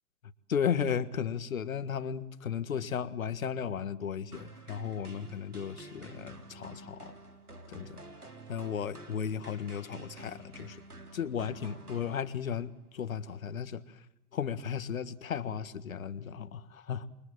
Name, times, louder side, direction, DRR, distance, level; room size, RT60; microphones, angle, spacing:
voice 1, 0.5-7.1 7.7-8.0 8.5-10.8 11.1-13.8 14.3-17.1, left 7 dB, 65° left, 14 dB, 1.7 m, -35 dB
sound 1, 4.3-12.7, right 2 dB, 85° right, 3.5 m, -50 dB
28.5 x 23.0 x 7.6 m, 0.81 s
figure-of-eight pair, 110°, 44 cm